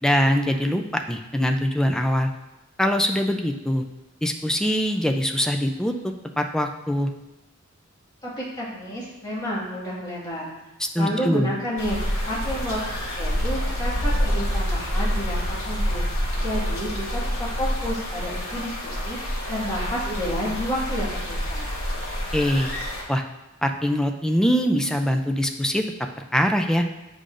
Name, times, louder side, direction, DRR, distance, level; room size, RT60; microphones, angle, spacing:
voice 1, 0.0-2.3 2.8-3.8 4.2-7.1 10.8-11.5 22.3-22.7 23.1-23.2 23.6-25.8 26.3-26.9, equal, 5° left, 5 dB, 0.4 m, -23 dB
voice 2, 8.2-10.5 10.9-12.8 13.2-16.0 16.4-21.7, equal, 20° left, -7 dB, 1.9 m, -30 dB
sound 1, 11.8-23.0, equal, 85° left, 1.6 m, -27 dB
8.3 x 5.0 x 2.6 m, 1.0 s
head